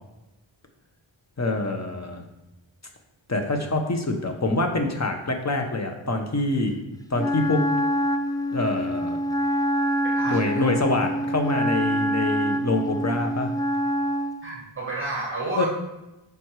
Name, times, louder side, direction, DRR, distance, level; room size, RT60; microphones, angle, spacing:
voice 1, 1.4-2.2 3.3-6.8 7.1-7.6 8.5-9.2 10.2-13.5 15.6-15.7, left 2 dB, 35° left, 4 dB, 1.2 m, -25 dB
Wind instrument woodwind instrument, 7.2-14.4, equal, 10° left, 0.5 m, -25 dB
voice 2, 10.1-10.7 14.4-15.7, right 2 dB, 25° right, -3 dB, 1.6 m, -31 dB
7.8 x 5.3 x 4.9 m, 0.97 s
wide cardioid pair, 80°, 47 cm